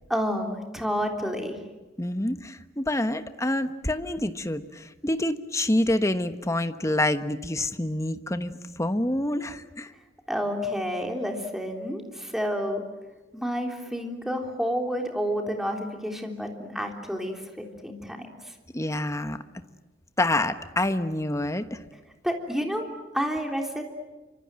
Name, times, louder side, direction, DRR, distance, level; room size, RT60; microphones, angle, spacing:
voice 1, 0.1-1.6 10.3-12.8 13.3-18.5 22.2-22.8 23.1-23.8, equal, ahead, 3 dB, 3.5 m, -30 dB
voice 2, 2.0-9.9 18.7-19.4 20.2-21.8, left 1 dB, 15° left, 10 dB, 1.2 m, -27 dB
28.0 x 25.5 x 7.7 m, 1.2 s
head